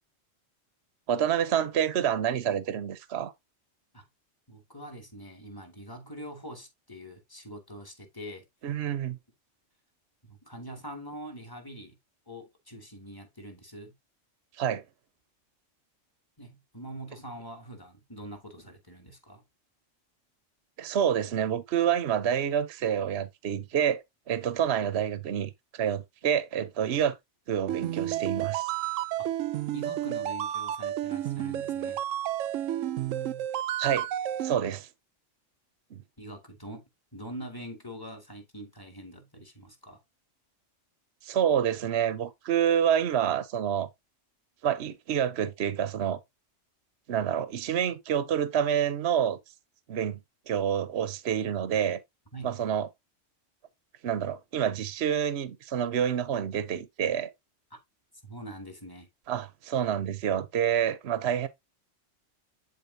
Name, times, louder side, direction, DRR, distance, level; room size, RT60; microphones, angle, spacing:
voice 1, 1.1-3.3 8.6-9.2 14.6-14.8 20.8-27.2 27.5-28.7 33.8-34.1 34.4-34.9 35.9-36.0 41.2-43.9 44.6-46.2 47.1-49.4 49.9-50.2 50.5-52.0 52.4-52.9 54.0-57.3 59.3-61.5, right 9 dB, 60° right, 1.0 m, -28 dB
voice 2, 4.5-8.4 10.2-12.0 12.3-13.9 16.4-19.4 29.2-29.3 29.7-32.0 34.6-34.8 36.2-36.8 37.1-40.0 52.3-52.6 57.7-57.8 58.2-59.1, right 1 dB, 15° left, 2.1 m, -44 dB
sound 1, 27.7-34.5, right 12 dB, 85° right, 1.0 m, -31 dB
10.5 x 4.5 x 2.7 m
omnidirectional pair, 1.3 m